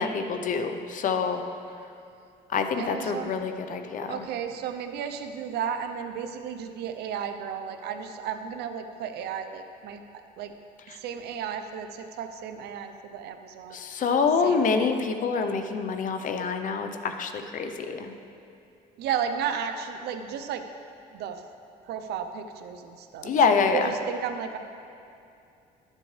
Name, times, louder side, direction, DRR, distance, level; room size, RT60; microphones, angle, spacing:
voice 1, 0.0-1.4 2.5-4.2 13.7-18.1 23.2-23.9, left 5 dB, 50° left, 7 dB, 0.7 m, -26 dB
voice 2, 2.8-3.4 4.1-10.0 10.4-10.5 11.0-13.8 14.4-15.0 19.0-20.6 21.1-21.4 21.8-24.6, right 8 dB, 75° right, 7 dB, 0.7 m, -34 dB
12.0 x 7.5 x 3.3 m, 2.6 s
cardioid pair, 110°, 17 cm